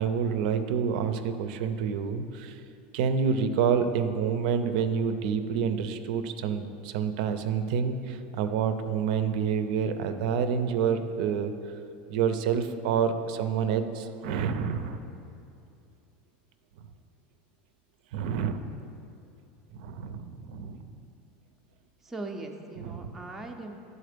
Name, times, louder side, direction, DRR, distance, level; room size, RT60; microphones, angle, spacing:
voice 1, 0.0-2.6 2.9-11.5 12.1-15.0 18.1-18.6 19.7-20.9 22.8-23.1, right 7 dB, 70° right, 9 dB, 0.4 m, -28 dB
voice 2, 22.0-23.7, right 2 dB, 5° right, 1 dB, 0.4 m, -39 dB
9.6 x 4.1 x 5.0 m, 2.6 s
supercardioid pair, 170°, 5 cm